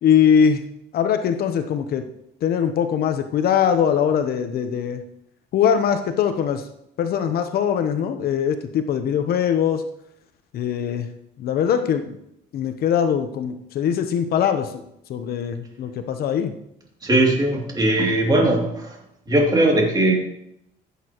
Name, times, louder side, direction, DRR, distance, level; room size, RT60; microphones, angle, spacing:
voice 1, 0.0-0.6 0.9-2.0 2.4-5.0 5.5-6.6 7.0-9.8 10.5-11.1 11.4-12.2 12.5-14.8 15.1-16.5, left 8 dB, 65° left, 8 dB, 0.9 m, -21 dB
voice 2, 17.0-19.0 19.3-20.1, right 1 dB, 25° right, -1 dB, 2.8 m, -19 dB
14.5 x 8.4 x 3.0 m, 0.77 s
cardioid pair, 110°, 17 cm